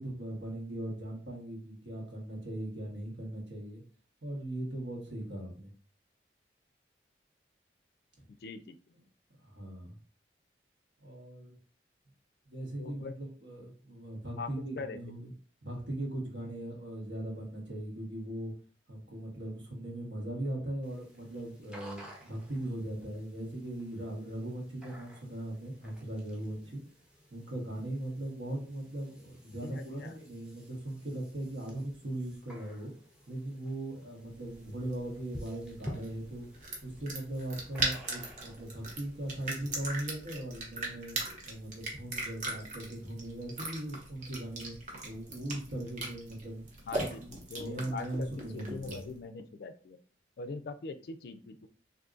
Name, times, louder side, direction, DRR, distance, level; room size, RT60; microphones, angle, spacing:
voice 1, 0.0-3.8 4.2-5.7 9.4-10.0 11.0-11.6 12.5-15.3 15.6-18.5 18.9-26.8 27.3-32.9 33.3-36.5 36.8-41.2 41.5-44.8 45.0-46.7 47.2-49.0, right 1 dB, 85° right, -2 dB, 1.2 m, -39 dB
voice 2, 8.4-8.8 12.8-13.2 14.4-14.5 14.8-15.0 29.6-30.2 46.9-50.0 50.4-51.7, left 4 dB, 55° left, 9 dB, 0.3 m, -42 dB
sound 1, 20.8-39.7, equal, 5° right, 0.5 m, -51 dB
sound 2, 34.3-49.2, right 2 dB, 40° right, 0.8 m, -40 dB
3.7 x 2.6 x 2.5 m, 0.42 s
head